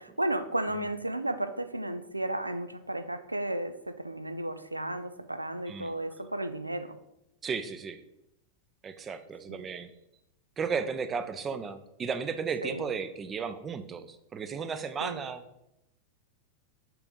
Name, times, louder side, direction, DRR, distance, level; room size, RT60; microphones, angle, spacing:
voice 1, 0.0-7.0 9.5-9.6 12.6-12.9 15.0-15.2, right 1 dB, 85° right, 11 dB, 0.4 m, -33 dB
voice 2, 7.4-8.0 8.8-9.9 10.6-15.4, right 6 dB, 20° right, 11 dB, 0.5 m, -34 dB
5.7 x 3.5 x 5.3 m, 0.86 s
figure-of-eight pair, 90°, 0 cm